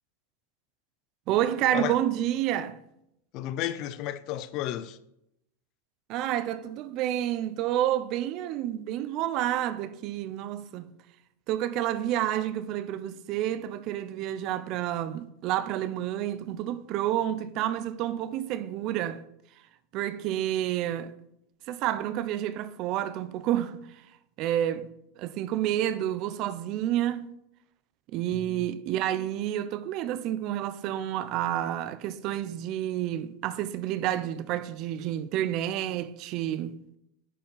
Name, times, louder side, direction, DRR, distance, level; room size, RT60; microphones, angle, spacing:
voice 1, 1.3-2.8 6.1-10.9 11.5-19.2 19.9-21.1 21.7-23.9 24.4-24.9 25.2-27.3 28.1-36.7, right 12 dB, 45° right, 0.5 m, -29 dB
voice 2, 3.3-5.0 28.3-28.7, left 12 dB, 45° left, 0.5 m, -33 dB
10.0 x 4.5 x 3.9 m
supercardioid pair, 145°, 0 cm